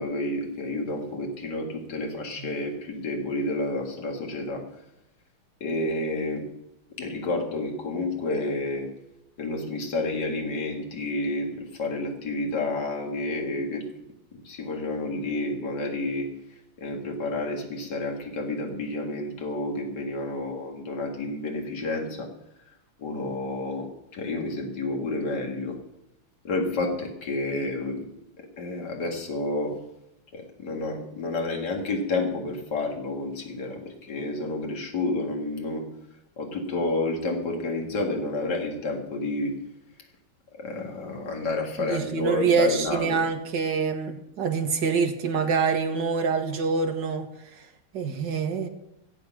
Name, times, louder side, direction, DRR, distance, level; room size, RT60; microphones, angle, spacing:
voice 1, 0.0-4.6 5.6-6.4 7.0-8.9 9.4-13.8 14.3-16.3 16.8-22.3 23.0-25.8 26.4-28.0 28.6-29.7 30.3-35.8 36.4-39.6 40.5-43.2, left 2 dB, 50° left, 1 dB, 2.6 m, -30 dB
voice 2, 41.8-47.3 47.9-48.7, right 5 dB, 60° right, 5 dB, 2.0 m, -25 dB
16.5 x 8.1 x 6.2 m, 0.86 s
omnidirectional pair, 2.3 m